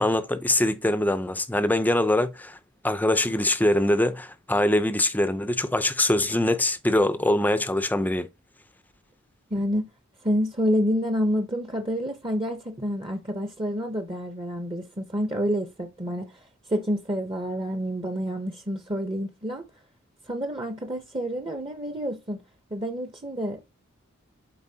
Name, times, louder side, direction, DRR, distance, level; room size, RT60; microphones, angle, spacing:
voice 1, 0.0-2.6 2.8-8.3, left 1 dB, 10° left, 0.6 m, -23 dB
voice 2, 9.5-9.9 10.2-16.3 16.7-19.7 20.3-22.4 22.7-23.7, equal, 25° right, 0.8 m, -28 dB
11.0 x 4.5 x 2.8 m
head